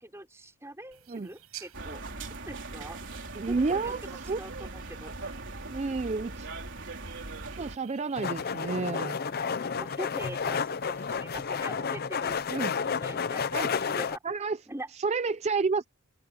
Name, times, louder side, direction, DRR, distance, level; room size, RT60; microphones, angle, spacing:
voice 1, 0.0-2.0 2.5-3.0 3.5-5.1 9.8-14.2 14.7-14.9, right 1 dB, 10° right, 4.3 m, -43 dB
sound 1, 0.9-11.2, right 11 dB, 75° right, 6.9 m, -54 dB
sound 2, 1.7-7.8, right 3 dB, 55° right, 4.2 m, -40 dB
voice 2, 3.3-4.4 5.7-6.5 7.6-9.2 12.5-12.8 13.5-13.7 14.2-14.6 15.0-15.9, right 4 dB, 30° right, 0.4 m, -30 dB
sound 3, 8.2-14.2, left 6 dB, 45° left, 0.6 m, -31 dB
open air
head